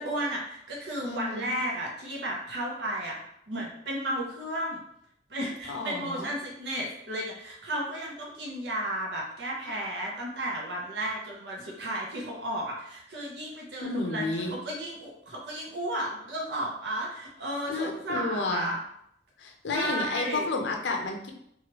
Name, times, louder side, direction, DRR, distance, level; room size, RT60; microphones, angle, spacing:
voice 1, 0.0-3.2 3.5-4.8 5.3-18.8 19.7-20.5, right 1 dB, 70° right, -2 dB, 0.7 m, -33 dB
voice 2, 1.0-1.6 5.7-6.3 13.8-14.6 17.7-18.7 19.4-21.3, left 3 dB, 85° left, 3 dB, 0.5 m, -31 dB
3.0 x 2.3 x 2.9 m, 0.74 s
head